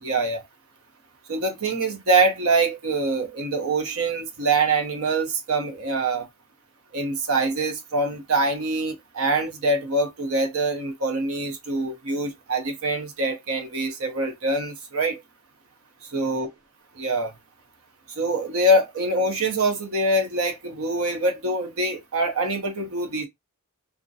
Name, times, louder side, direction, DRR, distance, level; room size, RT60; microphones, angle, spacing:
voice 1, 0.0-0.4 1.3-6.3 6.9-15.2 16.1-16.5 17.0-17.3 18.2-23.3, right 2 dB, 80° right, 0.7 m, -24 dB
2.4 x 2.1 x 2.6 m
head